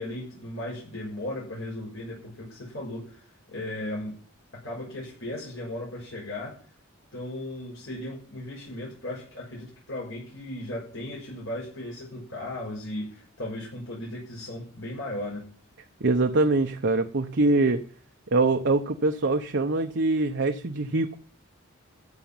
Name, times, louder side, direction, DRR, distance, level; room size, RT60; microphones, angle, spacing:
voice 1, 0.0-4.1 4.5-6.6 7.1-15.5, left 1 dB, 70° left, -5 dB, 6.8 m, -36 dB
voice 2, 16.0-17.8 18.3-21.2, right 2 dB, 55° right, 6 dB, 0.9 m, -23 dB
14.5 x 7.3 x 9.0 m, 0.43 s
head